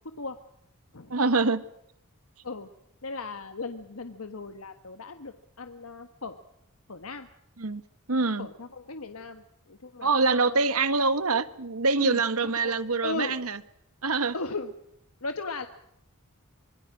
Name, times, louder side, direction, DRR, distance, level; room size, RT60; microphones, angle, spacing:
voice 1, 1.1-1.6 7.6-7.8 8.1-8.5 10.0-13.6 14.0-14.3, right 3 dB, 85° right, 13 dB, 1.5 m, -25 dB
voice 2, 3.0-6.4 6.9-7.3 8.4-10.6 10.9-11.0 12.0-12.8 13.0-13.4 14.3-14.7 15.2-15.7, left 3 dB, 75° left, 7 dB, 1.4 m, -37 dB
25.0 x 21.5 x 6.2 m, 0.77 s
head